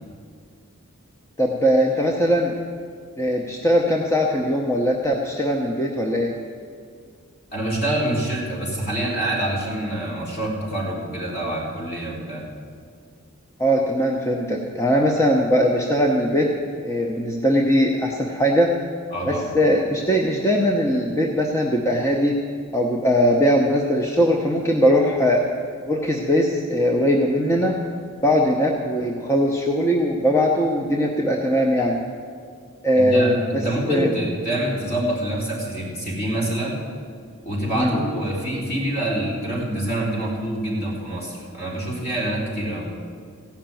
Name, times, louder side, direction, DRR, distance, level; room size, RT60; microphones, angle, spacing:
voice 1, 1.4-2.6 3.2-6.3 13.6-16.5 16.8-18.7 19.3-22.4 22.7-25.4 25.9-27.8 28.2-32.0 32.8-34.1 37.8-38.0, equal, 15° left, 0 dB, 0.8 m, -20 dB
voice 2, 7.5-12.4 19.1-19.5 32.9-36.8 37.4-42.9, right 1 dB, 45° left, -5 dB, 3.9 m, -26 dB
16.0 x 5.8 x 9.0 m, 2.2 s
head